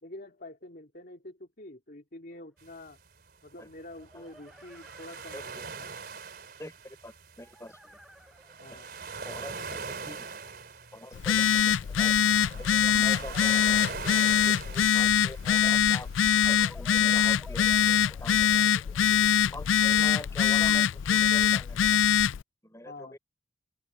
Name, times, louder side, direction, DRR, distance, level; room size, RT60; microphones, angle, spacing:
voice 1, 0.0-3.0 3.4-5.9 8.6-8.9 13.0-13.3 22.8-23.2, left 1 dB, 50° left, 2.9 m, -47 dB
sound 1, 2.3-2.4 3.8-6.2 7.4-10.9 12.1-15.1 16.3-20.6, equal, ahead, 6.7 m, -54 dB
sound 2, 2.6-16.3, right 5 dB, 50° right, 3.8 m, -43 dB
voice 2, 6.6-8.0 8.7-8.8 9.3-10.3 10.9-12.2 12.5-14.1 14.5-16.1 16.4-19.0 19.5-22.0 22.6-23.2, left 1 dB, 15° left, 5.6 m, -44 dB
Telephone, 11.1-22.4, left 8 dB, 80° left, 0.4 m, -23 dB
head